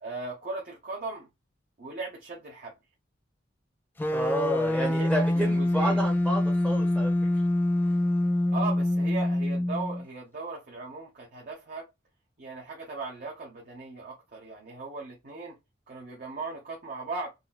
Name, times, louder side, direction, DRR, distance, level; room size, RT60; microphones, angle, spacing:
voice 1, 0.0-1.3 1.8-2.7 4.7-5.1 5.3-6.1 8.5-11.9 12.4-15.6 15.9-17.3, right 3 dB, 50° right, 0.9 m, -38 dB
sound 1, 4.0-10.1, left 1 dB, 10° left, 0.4 m, -25 dB
voice 2, 4.1-7.1 7.8-8.0, right 1 dB, 5° right, 0.8 m, -30 dB
4.0 x 2.1 x 2.3 m
head